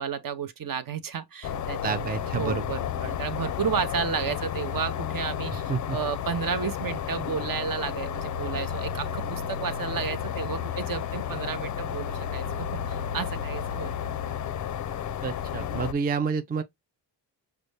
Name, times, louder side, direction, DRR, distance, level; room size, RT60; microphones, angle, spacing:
voice 1, 0.0-13.9, right 7 dB, 50° right, 0.8 m, -32 dB
sound 1, 1.4-15.9, left 8 dB, 45° left, 0.4 m, -32 dB
voice 2, 1.8-2.7 5.5-6.0 15.2-16.6, right 5 dB, 20° right, 0.4 m, -29 dB
5.1 x 2.2 x 3.2 m
cardioid pair, 70°, 43 cm